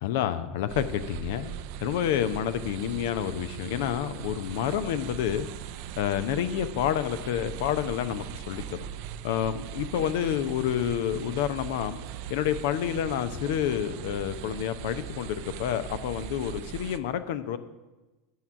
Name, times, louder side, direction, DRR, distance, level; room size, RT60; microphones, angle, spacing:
voice 1, 0.0-5.5 6.0-8.8 9.2-12.0 12.3-17.6, left 10 dB, 60° left, 12 dB, 0.7 m, -29 dB
sound 1, 0.7-17.0, right 10 dB, 55° right, 0.5 m, -40 dB
13.5 x 4.8 x 8.0 m, 1.1 s
figure-of-eight pair, 75°, 0 cm